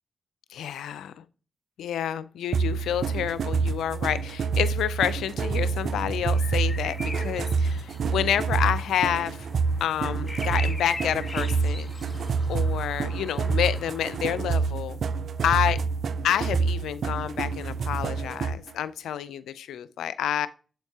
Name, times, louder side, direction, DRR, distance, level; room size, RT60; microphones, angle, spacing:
voice 1, 0.5-1.1 1.8-9.5 9.8-11.9 12.5-15.0 15.4-15.8 16.2-20.5, left 10 dB, 80° left, 0.4 m, -28 dB
sound 1, 2.5-18.7, right 5 dB, 70° right, 0.3 m, -27 dB
sound 2, 6.3-14.2, left 3 dB, 35° left, 1.5 m, -41 dB
7.7 x 4.4 x 2.8 m
supercardioid pair, 40°, 0 cm